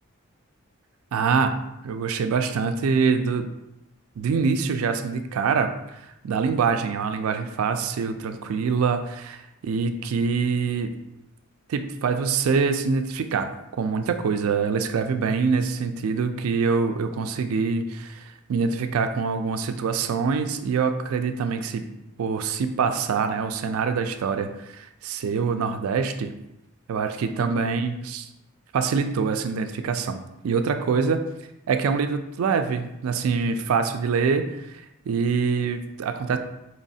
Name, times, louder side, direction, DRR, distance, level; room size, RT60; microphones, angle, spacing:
voice 1, 1.1-3.5 4.2-10.9 11.7-13.5 13.8-21.8 22.2-26.3 26.9-28.3 28.7-31.2 31.7-34.6 35.1-36.4, right 5 dB, 75° right, 8 dB, 0.3 m, -25 dB
4.4 x 3.1 x 2.7 m, 0.89 s
head